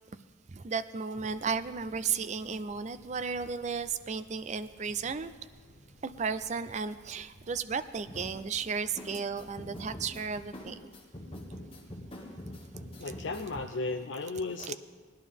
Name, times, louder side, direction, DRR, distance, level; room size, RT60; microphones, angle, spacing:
voice 1, 0.5-5.3 6.0-10.7 14.6-14.7, right 5 dB, 35° right, 12 dB, 0.4 m, -34 dB
sound 1, 1.1-10.7, equal, 50° left, 1.4 m, -59 dB
sound 2, 8.0-13.5, equal, 30° left, 1.4 m, -45 dB
voice 2, 13.0-14.7, left 3 dB, 70° left, 3 dB, 0.5 m, -35 dB
18.5 x 11.0 x 3.5 m, 1.5 s
head